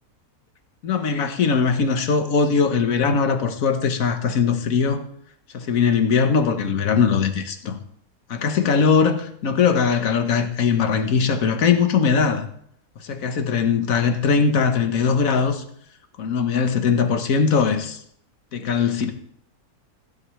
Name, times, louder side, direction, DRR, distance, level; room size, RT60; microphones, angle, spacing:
voice 1, 0.8-5.0 5.5-7.8 8.3-12.5 13.0-15.6 16.2-18.0 18.5-19.1, left 5 dB, 60° left, 7 dB, 1.5 m, -20 dB
16.0 x 10.5 x 3.3 m, 0.68 s
omnidirectional pair, 1.6 m